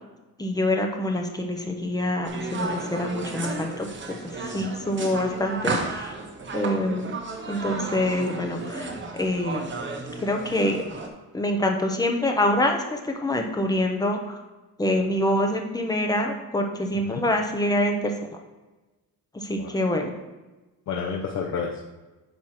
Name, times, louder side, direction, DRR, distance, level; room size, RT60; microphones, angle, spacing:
voice 1, 0.4-6.1 6.5-7.1 7.5-9.6 10.2-10.8 11.3-14.4 14.8-18.1 19.3-20.1, left 1 dB, 10° left, 3 dB, 0.8 m, -26 dB
sound 1, 2.2-11.1, right 3 dB, 30° right, 1.1 m, -33 dB
voice 2, 20.9-21.8, left 6 dB, 50° left, -1 dB, 0.8 m, -30 dB
9.1 x 3.1 x 5.8 m, 1.1 s
cardioid pair, 145°, 35 cm